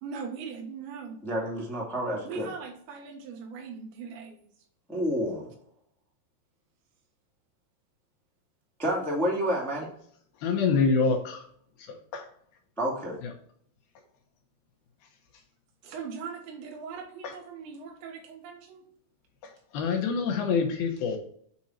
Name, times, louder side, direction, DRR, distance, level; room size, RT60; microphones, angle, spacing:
voice 1, 0.0-1.2 2.2-4.4 15.8-18.9, right 5 dB, 85° right, 2 dB, 3.7 m, -40 dB
voice 2, 1.2-2.4 4.9-5.5 8.8-9.9 12.8-13.2, equal, ahead, -4 dB, 0.6 m, -29 dB
voice 3, 10.4-11.5 11.8-12.3 13.2-13.3 17.2-17.3 19.4-21.2, left 5 dB, 70° left, 3 dB, 2.8 m, -26 dB
9.0 x 4.5 x 4.3 m, 0.64 s
omnidirectional pair, 5.0 m